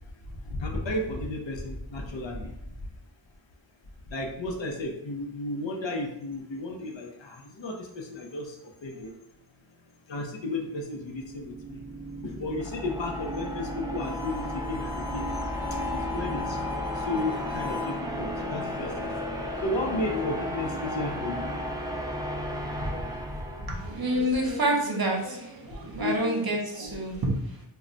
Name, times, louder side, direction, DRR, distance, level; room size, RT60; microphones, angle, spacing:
voice 1, 0.3-2.8 4.1-9.1 10.1-11.8 12.2-15.3 15.9-21.5 22.7-23.8 26.0-26.4 26.8-27.2, left 2 dB, 70° left, 1 dB, 0.6 m, -34 dB
sound 1, 11.0-24.1, equal, 10° right, 0.3 m, -34 dB
Harmonica, 13.9-18.0, left 5 dB, 35° left, 1.0 m, -41 dB
voice 2, 23.7-27.7, right 1 dB, 50° right, 0 dB, 0.7 m, -28 dB
2.2 x 2.1 x 3.7 m, 0.77 s
wide cardioid pair, 85°, 47 cm